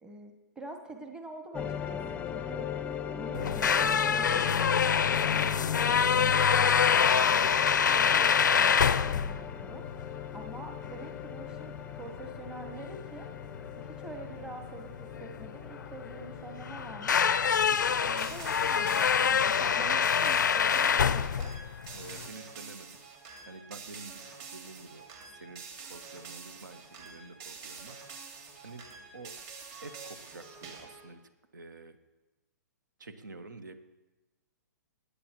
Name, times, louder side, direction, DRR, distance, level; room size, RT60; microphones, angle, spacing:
voice 1, 0.0-2.7 3.0-4.7 5.2-9.8 10.3-13.3 13.7-17.2 17.7-21.5, right 2 dB, 10° right, 4 dB, 0.9 m, -46 dB
sound 1, 1.5-21.4, left 8 dB, 15° left, 0.5 m, -41 dB
sound 2, 3.3-22.3, left 7 dB, 85° left, 0.4 m, -26 dB
sound 3, 18.2-31.1, right 5 dB, 35° right, 2.0 m, -47 dB
voice 2, 21.9-23.0 23.5-29.3 29.8-31.2 31.5-32.0 33.0-33.7, right 3 dB, 85° right, 10 dB, 1.1 m, -48 dB
18.5 x 8.6 x 3.0 m, 1.1 s
hypercardioid pair, 125°, 10 cm